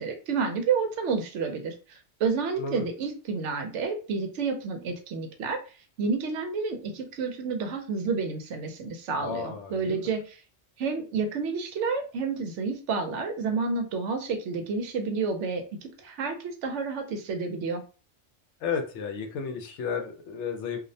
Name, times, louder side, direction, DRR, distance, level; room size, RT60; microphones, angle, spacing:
voice 1, 0.0-5.6 6.0-10.2 10.8-15.6 16.0-17.8, right 4 dB, 75° right, 5 dB, 0.9 m, -30 dB
voice 2, 9.2-10.1 18.6-20.8, left 6 dB, 75° left, 5 dB, 0.9 m, -33 dB
2.4 x 2.1 x 2.5 m, 0.36 s
omnidirectional pair, 1.2 m